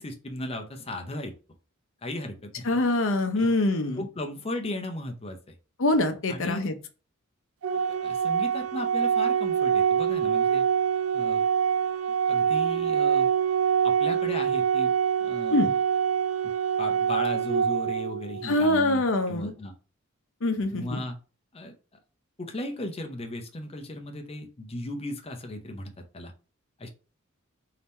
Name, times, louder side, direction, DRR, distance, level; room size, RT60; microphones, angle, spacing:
voice 1, 0.0-1.3 2.0-2.7 3.3-3.5 4.0-5.5 6.3-6.7 8.0-10.7 11.1-11.4 12.3-13.3 13.8-14.9 15.2-15.7 16.8-19.7 20.7-21.2 21.5-22.0 22.4-26.3 26.8-26.9, left 1 dB, 30° left, 4 dB, 0.6 m, -36 dB
voice 2, 2.6-4.1 5.8-6.7 15.5-15.7 18.4-19.5 20.4-21.0, left 2 dB, 65° left, 7 dB, 0.7 m, -24 dB
Organ, 7.6-18.6, right 7 dB, 75° right, 0.5 m, -25 dB
3.6 x 2.8 x 4.1 m, 0.34 s
head